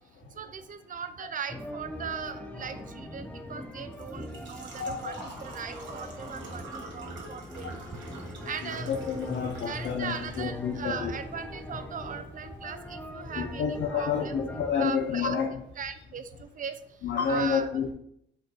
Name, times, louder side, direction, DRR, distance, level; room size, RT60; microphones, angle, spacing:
voice 1, 0.4-7.8 8.5-8.9 9.6-15.4 15.8-16.8 17.3-17.7, right 7 dB, 40° right, 10 dB, 0.5 m, -39 dB
sound 1, 1.5-14.7, left 1 dB, 5° left, 0.5 m, -41 dB
Engine / Trickle dribble / Fill (with liquid), 3.2-15.2, right 2 dB, 65° right, 1.3 m, -48 dB
voice 2, 4.8-5.1 8.6-11.1 13.4-15.5 17.0-17.9, left 6 dB, 65° left, 3 dB, 0.6 m, -29 dB
4.3 x 2.6 x 4.7 m, 0.72 s
cardioid pair, 90°, 20 cm